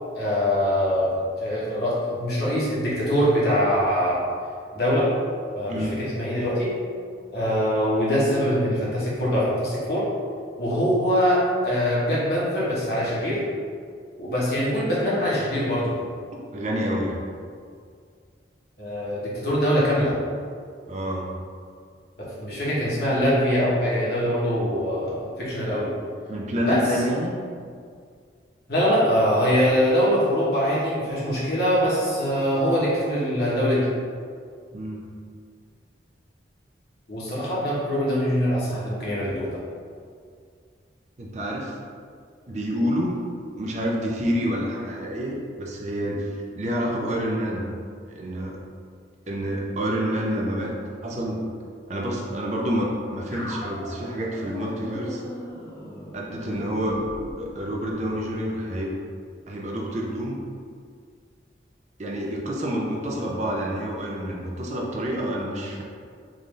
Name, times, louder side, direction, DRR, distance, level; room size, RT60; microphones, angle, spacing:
voice 1, 0.1-4.2 4.7-5.1 5.5-6.8 7.3-10.1 10.6-13.5 14.2-16.0 18.8-20.1 22.2-25.9 26.5-27.0 28.7-33.9 37.1-39.6, equal, 55° left, -7 dB, 1.1 m, -23 dB
voice 2, 5.7-6.0 16.3-17.2 20.9-21.3 26.3-27.3 34.7-35.0 41.2-41.8 42.5-43.3 43.6-46.2 46.6-47.7 48.1-48.6 49.3-50.7 51.0-51.4 51.9-55.2 56.1-57.0 57.4-58.9 59.5-60.4 62.0-65.8, equal, 40° right, -2 dB, 0.4 m, -28 dB
sound 1, 53.3-58.2, equal, 15° left, 0.7 m, -39 dB
3.7 x 2.6 x 3.2 m, 2.1 s
head